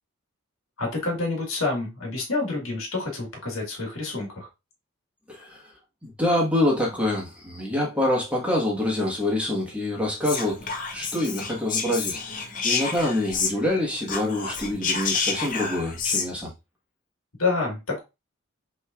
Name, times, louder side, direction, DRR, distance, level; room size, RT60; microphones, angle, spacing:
voice 1, 0.8-4.5 17.4-18.0, left 3 dB, 70° left, 1.7 m, -28 dB
voice 2, 5.3-5.7 6.0-16.5, left 1 dB, 5° right, 1.2 m, -26 dB
Whispering, 10.2-13.8 14.0-16.3, left 5 dB, 35° left, 0.7 m, -29 dB
6.2 x 3.2 x 2.4 m
head